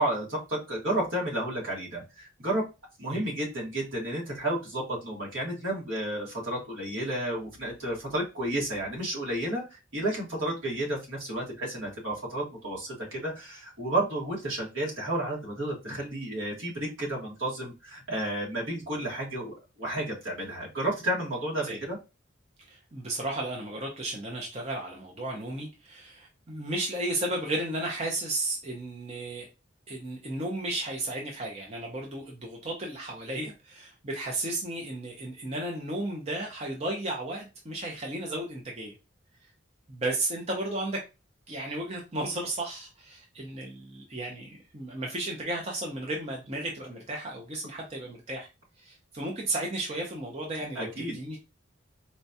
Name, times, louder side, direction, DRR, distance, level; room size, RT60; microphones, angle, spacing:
voice 1, 0.0-2.6 3.0-22.0 50.7-51.1, right 1 dB, 75° right, -2 dB, 1.5 m, -31 dB
voice 2, 22.7-29.5 29.9-38.9 39.9-41.0 41.5-48.5 48.8-51.4, right 1 dB, 30° right, -1 dB, 0.6 m, -34 dB
4.3 x 2.3 x 2.7 m, 0.27 s
head